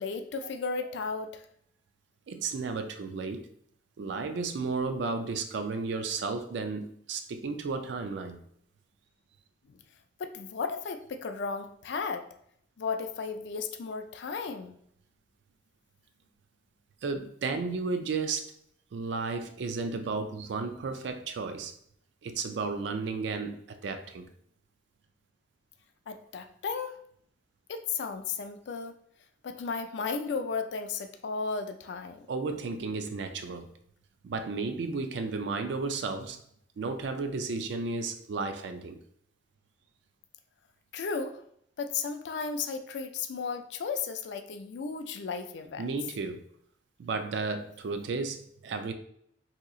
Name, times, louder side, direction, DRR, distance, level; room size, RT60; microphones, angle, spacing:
voice 1, 0.0-1.5 9.7-9.8 10.2-12.3 12.8-14.7 26.1-27.0 27.7-29.0 29.4-32.3 40.9-41.4 41.8-45.8, left 5 dB, 65° left, 0.4 m, -34 dB
voice 2, 2.3-3.5 4.0-8.4 17.0-18.5 18.9-21.7 22.2-24.3 32.3-33.7 34.2-36.4 36.8-39.0 45.8-46.4 47.0-48.9, right 4 dB, 65° right, 0.4 m, -33 dB
2.8 x 2.3 x 3.7 m
head